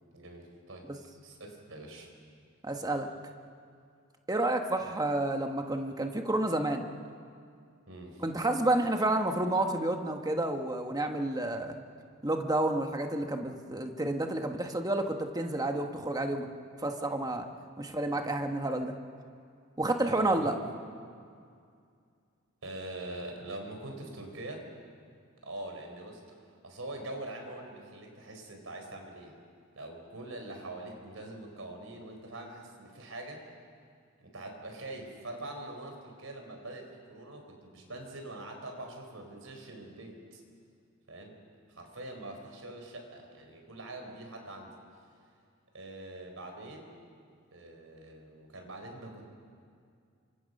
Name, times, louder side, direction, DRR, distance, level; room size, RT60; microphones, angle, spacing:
voice 1, 0.1-0.9 1.2-2.1 7.9-8.2 20.2-20.5 22.6-24.6 25.4-29.3 29.8-33.4 34.2-40.4 41.1-41.3 41.8-44.7 45.7-47.0 47.5-49.2, right 2 dB, 75° right, 3 dB, 4.4 m, -44 dB
voice 2, 2.6-3.1 4.3-6.9 8.2-11.8 12.2-16.5 16.8-17.5 17.8-18.9 19.8-20.5, right 2 dB, 20° right, 4 dB, 1.5 m, -30 dB
28.0 x 25.5 x 5.5 m, 2.3 s
head